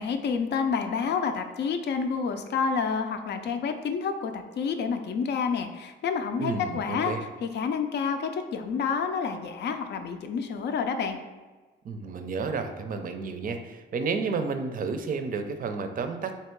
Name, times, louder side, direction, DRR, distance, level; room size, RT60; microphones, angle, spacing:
voice 1, 0.0-7.1 7.4-11.2, left 5 dB, 60° left, 7 dB, 0.5 m, -29 dB
voice 2, 6.4-7.2 11.8-16.4, right 4 dB, 45° right, 7 dB, 0.5 m, -31 dB
3.5 x 2.8 x 4.5 m, 1.3 s
cardioid pair, 90°, 20 cm